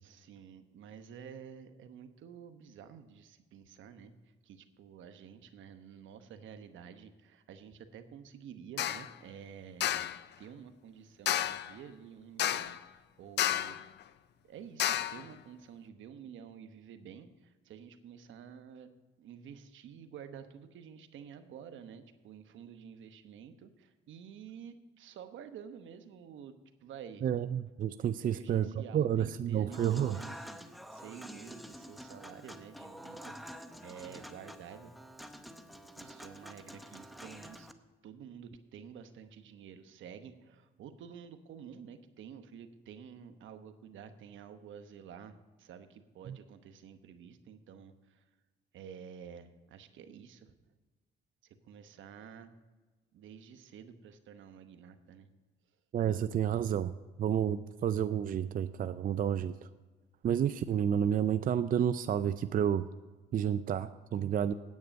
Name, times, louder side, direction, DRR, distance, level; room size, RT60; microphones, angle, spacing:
voice 1, 0.0-4.1 4.4-10.1 10.4-13.8 14.4-18.9 19.2-26.5 26.8-27.2 28.2-33.4 33.8-34.9 36.0-37.7 38.0-48.2 48.7-50.5 51.4-52.5 53.1-55.3, right 7 dB, 75° right, 9 dB, 1.0 m, -50 dB
sound 1, 8.8-9.1 9.8-10.2 11.3-11.7 12.4-12.8 13.4-13.8 14.8-15.2, left 11 dB, 60° left, 0.5 m, -31 dB
voice 2, 27.2-30.2 46.3-46.4 55.9-59.5 60.2-62.9 63.3-64.5, right 9 dB, 45° right, 12 dB, 0.4 m, -30 dB
Human voice / Acoustic guitar / Piano, 29.7-37.7, equal, ahead, 0.8 m, -48 dB
9.6 x 8.7 x 5.2 m, 1.3 s
cardioid pair, 90°, 20 cm